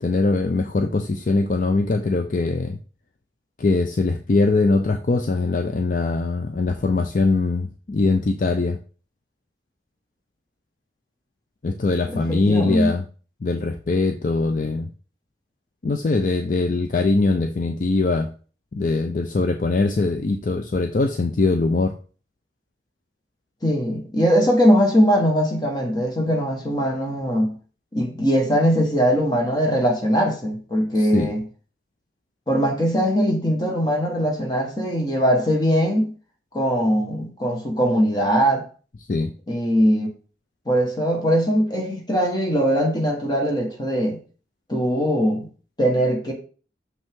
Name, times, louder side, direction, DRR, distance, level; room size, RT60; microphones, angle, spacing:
voice 1, 0.0-2.8 3.6-8.8 11.6-13.0 13.4-14.9 15.8-18.3 18.7-22.0 30.9-31.3 39.1-39.3, left 3 dB, 45° left, 0.4 m, -22 dB
voice 2, 12.1-12.9 23.6-27.5 27.9-31.4 32.5-36.1 36.5-38.6 39.5-40.1 40.7-44.2 44.7-45.5 45.8-46.3, equal, 25° left, 1.5 m, -21 dB
6.4 x 5.3 x 3.7 m
head